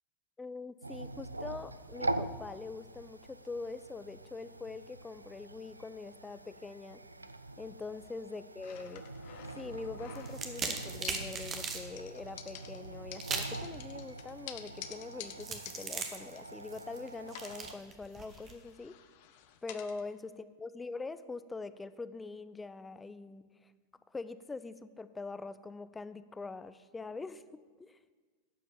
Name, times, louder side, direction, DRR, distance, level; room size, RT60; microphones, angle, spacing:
voice 1, 0.4-7.0 7.6-9.0 9.6-19.0 19.6-23.7 24.1-28.0, left 3 dB, 10° left, 13 dB, 0.4 m, -44 dB
sound 1, 0.8-17.7, right 2 dB, 80° right, 0.4 m, -44 dB
sound 2, 8.6-10.6 11.0-11.7 12.0-17.0 17.3-20.0, left 11 dB, 50° left, 0.7 m, -50 dB
sound 3, 10.1-11.8 13.2-13.6 15.4-18.5, right 5 dB, 25° right, 1.1 m, -39 dB
11.5 x 5.0 x 6.9 m, 1.5 s
figure-of-eight pair, 90°, 0 cm